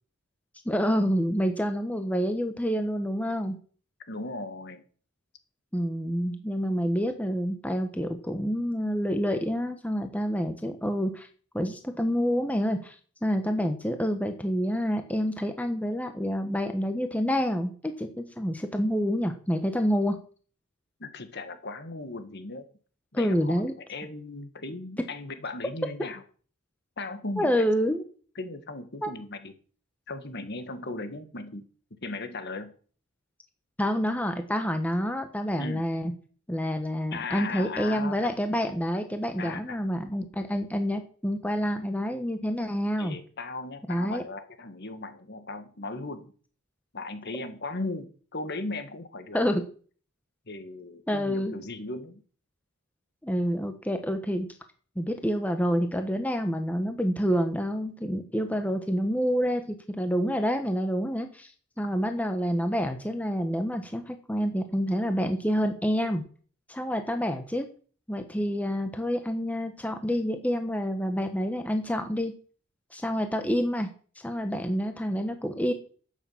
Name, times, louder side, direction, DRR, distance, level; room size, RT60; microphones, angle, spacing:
voice 1, 0.6-3.6 5.7-11.3 11.5-13.0 13.2-20.2 23.1-23.7 27.4-28.0 29.0-29.1 33.8-36.1 36.5-43.2 43.9-44.2 49.3-49.6 51.1-51.6 53.2-54.5 55.0-61.5 61.8-66.2 66.7-67.7 68.1-72.3 72.9-73.9 74.2-75.7, equal, 5° left, 6 dB, 1.2 m, -28 dB
voice 2, 4.1-4.8 21.0-22.7 23.1-23.6 23.9-26.2 27.0-27.7 28.4-29.5 30.1-31.7 32.0-32.7 35.6-35.9 37.1-38.3 39.4-39.8 43.0-46.3 46.9-49.4 50.5-52.2, left 2 dB, 50° left, 9 dB, 1.7 m, -37 dB
11.5 x 8.8 x 7.2 m, 0.43 s
head